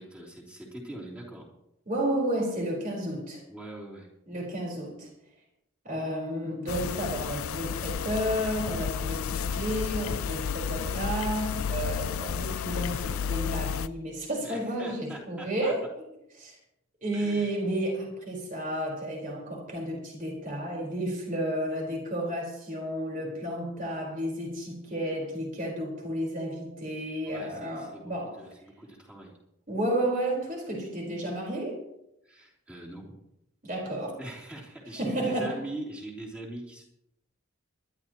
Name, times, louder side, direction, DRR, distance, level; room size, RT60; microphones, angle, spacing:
voice 1, 0.0-1.5 3.5-4.1 14.4-15.7 17.1-17.5 27.3-29.3 32.2-33.0 34.2-36.8, right 1 dB, 5° right, -4 dB, 3.3 m, -42 dB
voice 2, 1.9-3.4 4.3-5.1 5.8-15.8 16.4-16.5 17.0-28.4 29.7-31.8 33.6-34.2 35.0-35.6, right 1 dB, 40° right, -1 dB, 4.6 m, -32 dB
sound 1, 6.7-13.9, left 7 dB, 90° left, 0.5 m, -32 dB
23.0 x 12.0 x 3.1 m, 0.82 s
head